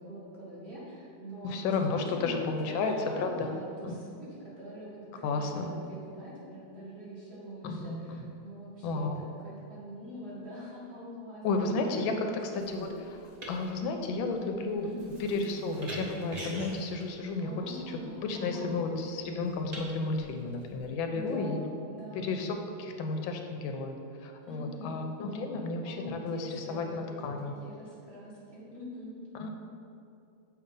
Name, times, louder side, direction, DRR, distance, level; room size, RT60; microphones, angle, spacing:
voice 1, 0.0-12.7 14.8-15.1 17.4-18.7 21.1-22.2 24.4-27.3 27.6-29.2, equal, 35° right, -8 dB, 1.5 m, -44 dB
voice 2, 1.4-3.5 3.8-3.9 5.2-5.7 7.6-8.2 8.8-9.2 11.4-12.1 12.7-12.9 13.5-14.9 15.2-21.6 22.1-27.5 29.3-29.5, left 3 dB, 85° left, 4 dB, 1.4 m, -32 dB
sound 1, 12.5-20.9, right 1 dB, 55° right, 0.4 m, -46 dB
7.1 x 2.7 x 5.2 m, 2.5 s
omnidirectional pair, 2.1 m